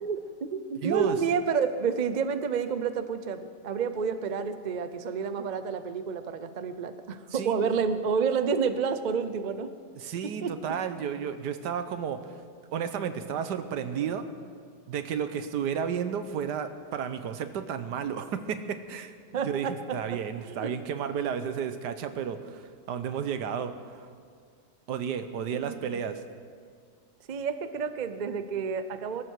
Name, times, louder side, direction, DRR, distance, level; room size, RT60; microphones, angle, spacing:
voice 1, 0.0-9.7 10.4-10.7 19.3-20.2 20.4-20.7 25.5-26.0 27.3-29.2, right 6 dB, 50° right, 10 dB, 0.5 m, -30 dB
voice 2, 0.8-1.2 7.3-7.6 9.9-12.3 12.7-14.3 14.9-19.1 19.4-24.1 24.9-26.2, right 7 dB, 80° right, 10 dB, 1.5 m, -32 dB
22.0 x 12.5 x 4.7 m, 2.1 s
omnidirectional pair, 1.8 m